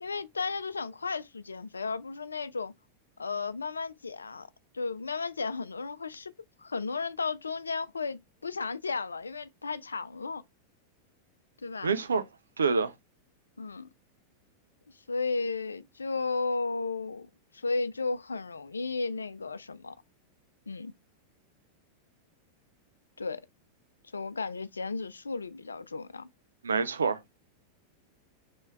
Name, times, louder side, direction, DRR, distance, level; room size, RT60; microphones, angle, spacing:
voice 1, 0.0-2.7 3.2-4.5 4.7-6.3 6.6-10.4 11.6-12.0 13.6-13.9 15.1-20.0 20.7-20.9 23.2-23.4 24.1-26.3, left 4 dB, 75° left, 0.3 m, -34 dB
voice 2, 11.8-12.2 12.6-12.9 26.6-27.2, right 5 dB, 70° right, 0.4 m, -26 dB
3.2 x 3.0 x 4.4 m
figure-of-eight pair, 90°, 0 cm